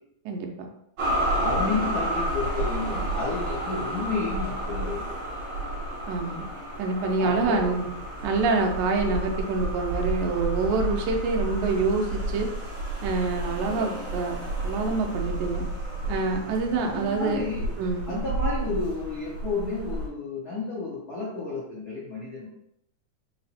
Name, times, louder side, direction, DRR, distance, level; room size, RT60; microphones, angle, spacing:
voice 1, 0.3-0.7 6.1-6.5 6.8-7.9 8.2-12.5 13.0-14.4 14.6-15.6 16.1-17.4 17.8-18.2, right 3 dB, 85° right, 2 dB, 2.1 m, -26 dB
sound 1, 1.0-20.1, right 1 dB, 55° right, 1.5 m, -31 dB
voice 2, 1.3-5.0 7.2-7.7 16.8-17.7 18.1-22.5, left 3 dB, 85° left, -8 dB, 0.8 m, -31 dB
4.8 x 2.0 x 4.1 m, 0.77 s
omnidirectional pair, 3.4 m